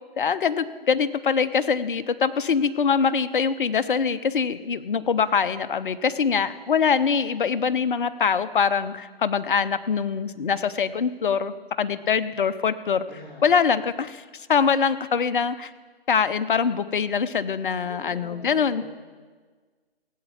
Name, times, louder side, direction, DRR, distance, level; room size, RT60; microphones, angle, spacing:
voice 1, 0.2-13.0 13.4-15.7 16.1-18.8, left 6 dB, 55° left, 12 dB, 0.7 m, -23 dB
voice 2, 13.1-13.8 17.8-19.1, equal, 5° left, -11 dB, 2.8 m, -44 dB
16.5 x 8.0 x 7.3 m, 1.5 s
figure-of-eight pair, 145°, 31 cm